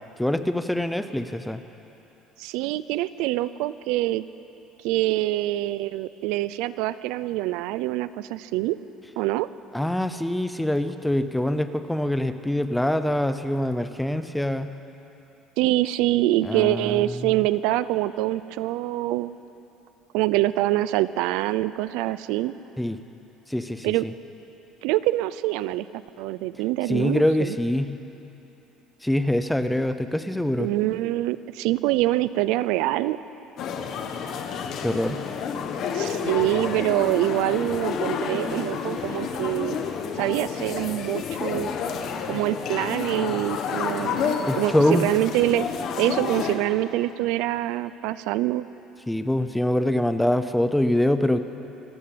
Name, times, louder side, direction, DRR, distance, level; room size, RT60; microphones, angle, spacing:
voice 1, 0.2-1.6 9.7-14.7 16.4-17.3 22.8-23.0 23.5-24.1 26.9-27.9 29.0-30.7 34.8-35.2 44.5-45.1 49.1-51.4, left 1 dB, 5° left, 10 dB, 0.6 m, -24 dB
voice 2, 2.4-4.2 4.8-8.8 9.2-9.5 15.6-19.3 20.1-22.5 23.8-24.1 24.8-27.6 30.6-33.2 35.9-39.8 40.2-41.7 42.2-45.7 46.0-48.7, right 16 dB, 80° right, 16 dB, 0.6 m, -25 dB
sound 1, 33.6-46.6, left 6 dB, 45° left, 1.4 m, -30 dB
26.5 x 12.5 x 8.6 m, 3.0 s
cardioid pair, 180°, 0 cm